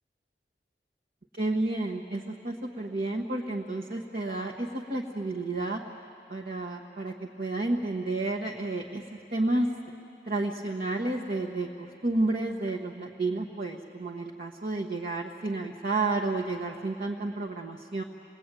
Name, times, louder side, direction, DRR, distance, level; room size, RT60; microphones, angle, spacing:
voice 1, 1.4-5.8 6.3-9.0 9.3-9.7 10.2-18.0, right 2 dB, 55° right, -1 dB, 1.3 m, -31 dB
28.0 x 20.5 x 9.1 m, 2.6 s
head